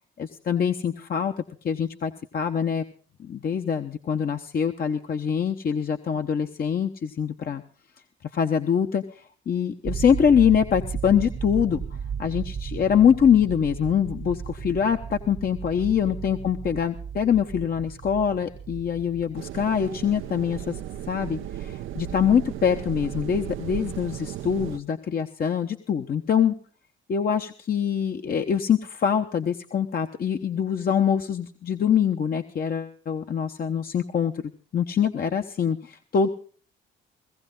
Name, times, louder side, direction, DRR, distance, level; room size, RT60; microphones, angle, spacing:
voice 1, 0.2-1.3 1.6-2.8 3.2-7.6 8.3-11.8 12.2-20.8 21.1-26.5 27.1-34.4 34.7-36.3, left 7 dB, 50° left, 6 dB, 1.1 m, -24 dB
sound 1, 9.9-19.7, right 7 dB, 45° right, 0.7 m, -35 dB
sound 2, 19.3-24.8, right 11 dB, 85° right, 0.7 m, -35 dB
18.0 x 15.5 x 3.9 m, 0.41 s
cardioid pair, 90°, 20 cm